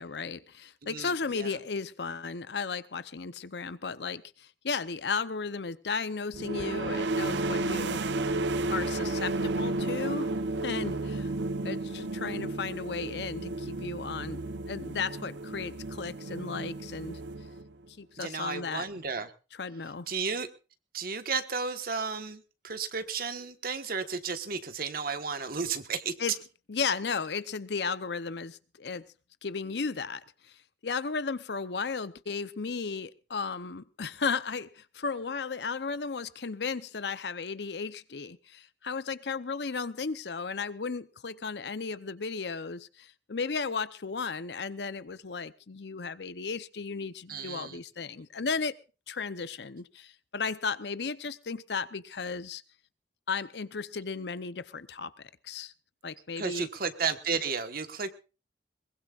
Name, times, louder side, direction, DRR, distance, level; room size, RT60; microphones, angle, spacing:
voice 1, 0.0-8.0 8.7-10.3 10.6-11.3 11.6-14.4 14.7-17.2 18.0-18.8 19.6-20.1 26.2-26.4 26.7-29.1 29.4-30.5 30.8-48.7 49.1-52.6 53.3-55.1 55.4-55.7 56.0-56.7, left 5 dB, 65° left, 0.7 m, -35 dB
voice 2, 0.8-1.6 18.2-19.3 20.1-20.5 20.9-26.1 47.3-47.8 56.4-58.1, right 5 dB, 55° right, 1.4 m, -33 dB
sound 1, 6.3-17.9, right 2 dB, 85° right, 0.8 m, -32 dB
22.0 x 20.5 x 2.5 m
head